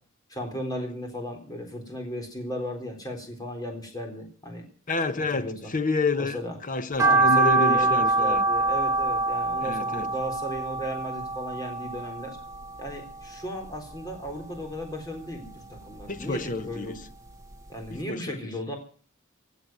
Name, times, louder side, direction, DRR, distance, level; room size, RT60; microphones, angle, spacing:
voice 1, 0.3-4.6 5.3-5.7 6.2-6.5 7.0-12.4 12.8-17.0 17.7-18.8, equal, 20° left, 3.9 m, -35 dB
voice 2, 4.9-8.4 9.6-10.1 16.1-16.9 17.9-18.4, left 3 dB, 40° left, 1.1 m, -29 dB
sound 1, 7.0-13.3 13.7-14.8 15.2-16.6 17.0-17.1 17.5-17.6 17.9-18.0, right 2 dB, 15° right, 1.6 m, -25 dB
16.5 x 8.0 x 9.2 m
head